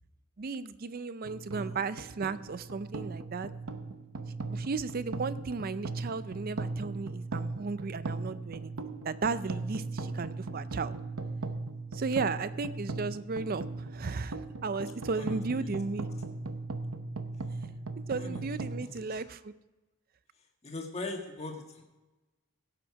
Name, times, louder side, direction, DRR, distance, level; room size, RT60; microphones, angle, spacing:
voice 1, 0.4-3.5 4.5-10.9 11.9-16.1 18.1-19.5, right 4 dB, 45° right, 15 dB, 0.5 m, -35 dB
sound 1, 1.2-18.8, right 3 dB, 85° right, 0.9 m, -38 dB
voice 2, 15.1-15.7 18.2-18.4 18.8-19.2 20.6-21.8, left 2 dB, 30° left, 1 dB, 1.7 m, -41 dB
16.5 x 7.9 x 4.7 m, 1.1 s
head